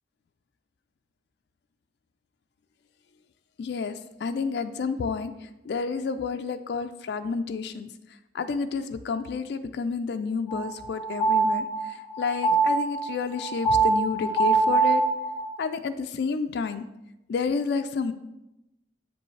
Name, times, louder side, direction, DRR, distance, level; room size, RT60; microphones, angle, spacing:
voice 1, 3.6-3.9 4.2-5.3 5.7-7.9 8.3-11.6 12.2-15.0 15.6-16.8 17.3-18.1, left 5 dB, 70° left, 8 dB, 0.3 m, -30 dB
sound 1, 10.5-15.6, right 4 dB, 10° right, 1.6 m, -24 dB
7.7 x 5.2 x 3.2 m, 0.93 s
head